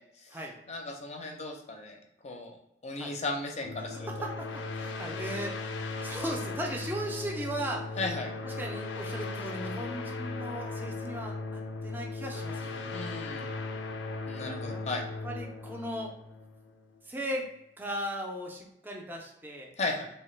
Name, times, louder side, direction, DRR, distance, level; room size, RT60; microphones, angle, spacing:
voice 1, 0.0-0.4 0.7-2.0 2.2-2.6 2.8-4.1 8.0-8.3 12.9-13.5 14.3-15.0 19.8-20.0, left 2 dB, 40° left, 2 dB, 0.5 m, -35 dB
sound 1, 3.6-17.0, left 3 dB, 90° left, 0.4 m, -37 dB
voice 2, 4.1-5.6 6.0-8.0 8.4-13.0 14.4-14.8 15.2-16.1 17.0-17.5 17.8-19.7, right 1 dB, 10° right, 0 dB, 0.5 m, -37 dB
3.1 x 2.2 x 3.1 m, 0.85 s
head